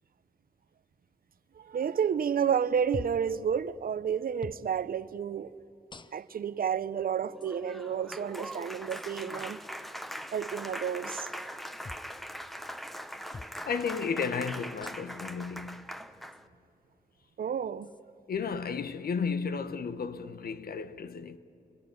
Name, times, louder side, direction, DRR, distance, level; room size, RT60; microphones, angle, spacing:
voice 1, 1.6-5.5 6.1-9.6 10.3-11.3 17.4-17.9, right 7 dB, 70° right, 0.7 m, -30 dB
sound 1, 2.9-3.3 4.4-4.7 5.9-6.4 7.4-7.5 8.9-9.1 11.8-12.1 13.3-13.6 14.8-15.2 16.3-16.4 17.8-18.0, left 3 dB, 30° left, 0.8 m, -44 dB
Applause, 7.3-16.5, equal, ahead, 1.0 m, -41 dB
voice 2, 13.7-15.9 18.3-21.4, left 5 dB, 80° left, 1.1 m, -33 dB
29.0 x 21.0 x 9.5 m
cardioid pair, 80°, 15 cm